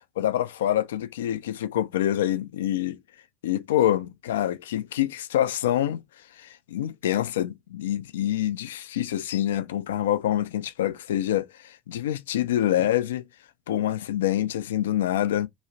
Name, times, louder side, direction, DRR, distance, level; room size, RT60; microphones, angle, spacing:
voice 1, 0.2-3.0 3.4-6.0 6.4-13.2 13.7-15.5, left 12 dB, 80° left, 0.3 m, -26 dB
3.9 x 2.3 x 2.6 m
figure-of-eight pair, 65°, 0 cm